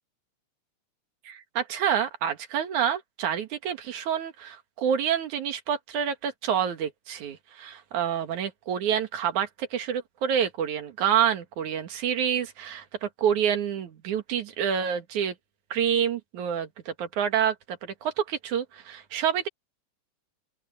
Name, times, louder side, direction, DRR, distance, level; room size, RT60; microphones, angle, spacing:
voice 1, 1.2-15.3 15.7-19.5, right 8 dB, 80° right, 3.2 m, -28 dB
open air
omnidirectional pair, 3.4 m